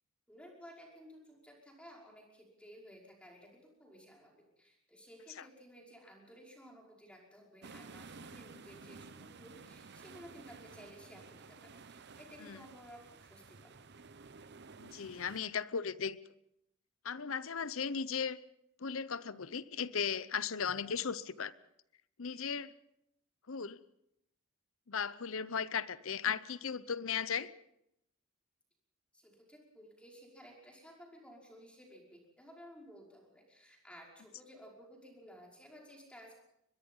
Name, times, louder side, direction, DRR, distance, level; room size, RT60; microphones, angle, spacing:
voice 1, 0.3-13.9 29.1-36.3, equal, 5° left, -1 dB, 5.4 m, -56 dB
sound 1, 7.6-15.4, right 4 dB, 50° right, 0.9 m, -53 dB
voice 2, 14.8-16.2 17.0-18.4 18.8-21.5 22.2-22.7 23.5-23.8 24.9-27.5, left 6 dB, 65° left, 17 dB, 0.8 m, -36 dB
23.5 x 21.0 x 5.5 m, 0.78 s
head